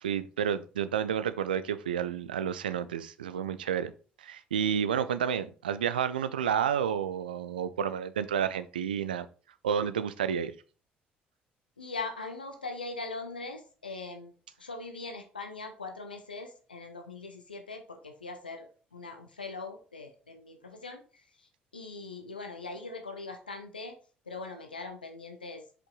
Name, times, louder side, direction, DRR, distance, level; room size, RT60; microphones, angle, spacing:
voice 1, 0.0-3.9 4.2-9.3 9.6-10.5, right 8 dB, 75° right, 13 dB, 0.4 m, -30 dB
voice 2, 11.8-14.3 14.6-21.5 21.7-24.0 24.3-25.6, left 3 dB, 85° left, 6 dB, 0.6 m, -41 dB
6.0 x 5.3 x 3.8 m, 0.38 s
figure-of-eight pair, 50°, 5 cm